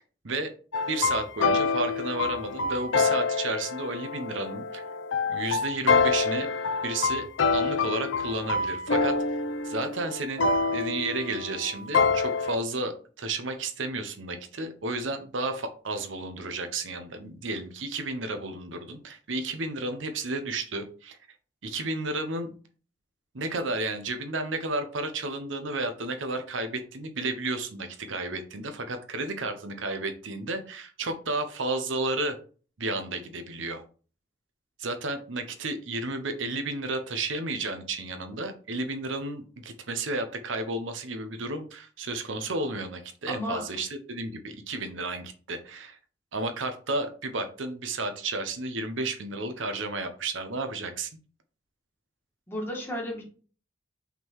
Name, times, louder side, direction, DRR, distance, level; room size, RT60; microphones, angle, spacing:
sound 1, 0.7-12.6, left 4 dB, 90° left, 0.7 m, -27 dB
voice 1, 0.9-4.8 5.3-6.5 6.8-9.1 9.6-10.4 10.7-21.2 21.6-22.5 23.3-32.3 32.8-33.8 34.8-46.0 46.3-51.1, right 2 dB, 90° right, 7 dB, 0.9 m, -32 dB
voice 2, 43.3-43.6 52.5-53.2, equal, 10° left, -2 dB, 1.9 m, -33 dB
5.7 x 3.8 x 4.7 m, 0.39 s
head